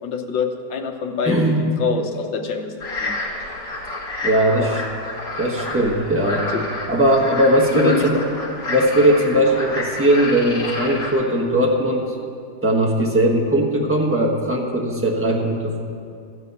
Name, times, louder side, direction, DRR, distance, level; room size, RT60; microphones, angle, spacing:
voice 1, 0.0-2.7 3.0-3.1 4.6-4.9 6.5-6.6 7.7-8.1, left 5 dB, 75° left, 5 dB, 1.6 m, -25 dB
voice 2, 1.2-1.6 4.2-4.8 5.4-6.5 6.9-8.2 8.7-12.1 12.6-15.8, right 1 dB, 10° right, -1 dB, 1.0 m, -19 dB
sound 1, 2.8-11.1, left 2 dB, 40° left, 2.7 m, -29 dB
14.5 x 5.0 x 8.1 m, 2.4 s
omnidirectional pair, 2.1 m